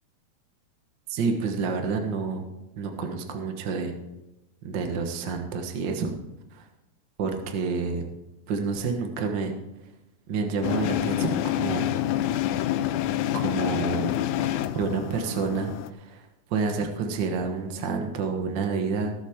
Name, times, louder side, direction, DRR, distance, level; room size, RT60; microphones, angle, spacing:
voice 1, 1.1-2.4 2.8-3.9 4.6-6.1 6.5-6.6 7.2-8.1 8.5-9.5 10.3-11.8 13.3-14.1 14.7-16.2 16.5-19.1, right 4 dB, 50° right, 4 dB, 1.5 m, -29 dB
sound 1, 10.6-15.9, left 12 dB, 85° left, 2.1 m, -27 dB
19.5 x 7.3 x 3.7 m, 0.97 s
omnidirectional pair, 3.4 m